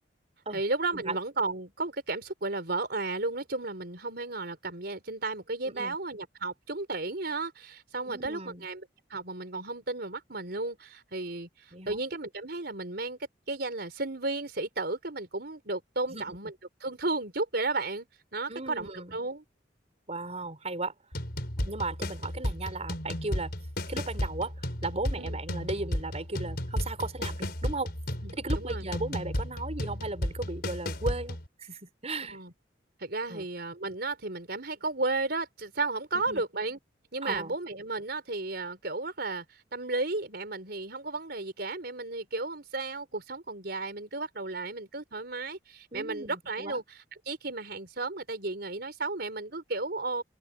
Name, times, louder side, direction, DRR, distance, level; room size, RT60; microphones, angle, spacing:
voice 1, 0.5-8.8 9.1-13.2 13.5-16.5 16.8-18.1 18.3-19.4 25.2-25.4 28.2-28.9 32.3-32.5 33.0-36.8 37.1-50.2, right 3 dB, 60° right, 4.8 m, -34 dB
voice 2, 8.1-8.7 11.7-12.0 16.1-16.4 18.5-19.2 20.1-20.9 21.7-23.5 23.9-27.9 28.3-32.4 33.3-33.4 36.1-36.4 37.2-37.5 45.9-46.8, right 2 dB, 35° right, 5.5 m, -36 dB
sound 1, 21.1-31.5, left 1 dB, 60° left, 4.8 m, -34 dB
open air
head